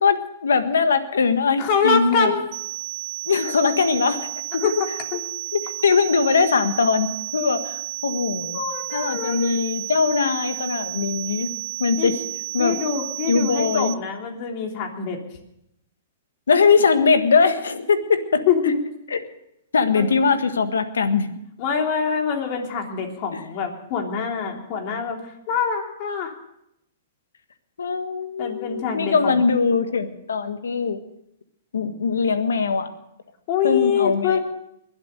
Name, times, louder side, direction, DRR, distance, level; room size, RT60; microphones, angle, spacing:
voice 1, 0.0-2.3 3.3-4.3 4.5-4.7 5.5-8.6 8.9-11.5 11.8-12.2 12.5-12.8 13.3-13.9 16.5-18.5 19.1-19.2 19.7-21.3 23.3-23.4 27.8-31.0 31.7-32.9 33.6-34.4, left 5 dB, 85° left, 10 dB, 1.5 m, -21 dB
voice 2, 1.6-2.4 4.6-4.7 5.1-5.2 8.5-9.6 12.0-12.1 12.6-15.2 18.5-18.8 19.9-20.1 21.6-25.2 25.5-26.3 28.4-29.4 33.5-34.4, left 6 dB, 45° left, 3 dB, 3.2 m, -24 dB
sound 1, 2.5-13.9, right 23 dB, 45° right, 0.8 m, -32 dB
22.0 x 8.2 x 6.7 m, 0.80 s
hypercardioid pair, 130°, 0 cm